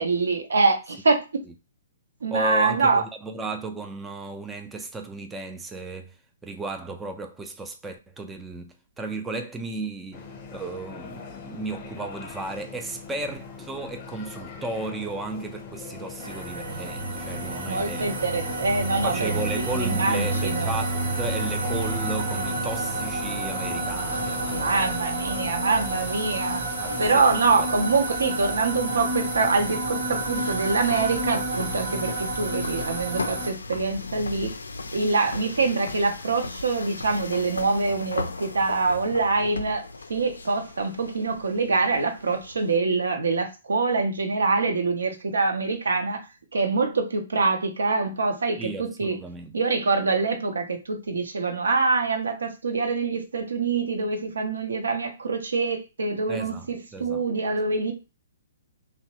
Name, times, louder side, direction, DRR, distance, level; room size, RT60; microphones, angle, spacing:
voice 1, 0.0-1.4 2.2-3.0 17.6-20.8 24.5-26.6 27.0-34.6 34.9-39.8 40.1-49.2 49.5-57.9, right 4 dB, 80° right, 0.6 m, -25 dB
voice 2, 2.3-6.2 6.4-18.1 19.0-25.0 26.8-27.2 27.6-27.7 48.6-49.6 56.3-56.7 56.9-57.2, right 2 dB, 10° right, 0.3 m, -34 dB
sound 1, 10.1-24.8, left 5 dB, 30° left, 0.7 m, -41 dB
sound 2, 16.2-33.5, right 2 dB, 50° right, 0.9 m, -29 dB
sound 3, 24.0-42.8, left 3 dB, 85° left, 0.3 m, -38 dB
2.8 x 2.0 x 2.8 m
hypercardioid pair, 130°, 0 cm